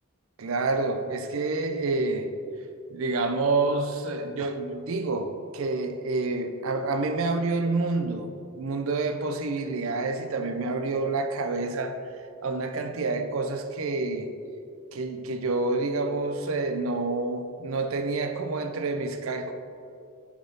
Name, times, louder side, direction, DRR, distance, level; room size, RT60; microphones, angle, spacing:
voice 1, 0.4-2.3 2.9-12.0 12.4-14.3 14.9-19.5, right 3 dB, 65° right, 7 dB, 0.5 m, -28 dB
7.3 x 3.6 x 3.9 m, 2.4 s
head